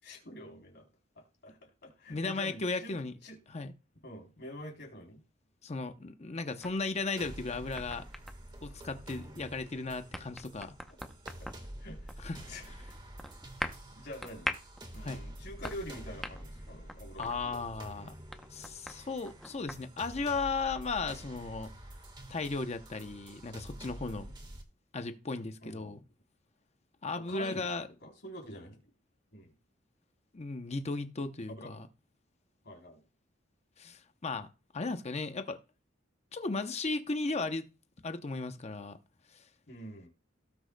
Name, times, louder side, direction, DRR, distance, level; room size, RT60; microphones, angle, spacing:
voice 1, 0.0-0.9 1.1-3.4 4.0-5.2 8.6-8.8 11.4-11.5 11.8-12.2 12.5-13.0 13.9-14.5 14.9-17.5 25.6-26.0 27.2-27.7 28.0-28.8 29.3-29.5 31.5-31.8 32.6-33.0 39.7-40.1, equal, 60° left, 3.5 m, -46 dB
voice 2, 2.1-3.1 3.5-3.7 5.6-8.1 8.6-10.7 12.2-12.5 15.0-15.2 17.2-18.1 18.5-21.7 22.3-24.3 24.9-26.0 27.0-27.9 30.3-31.8 33.8-34.5 34.7-35.6 36.3-37.7 38.0-39.0, left 3 dB, 35° left, 0.7 m, -36 dB
sound 1, 6.6-19.9, equal, ahead, 0.7 m, -45 dB
sound 2, 7.2-24.6, right 1 dB, 25° right, 1.5 m, -48 dB
18.0 x 6.3 x 2.2 m
head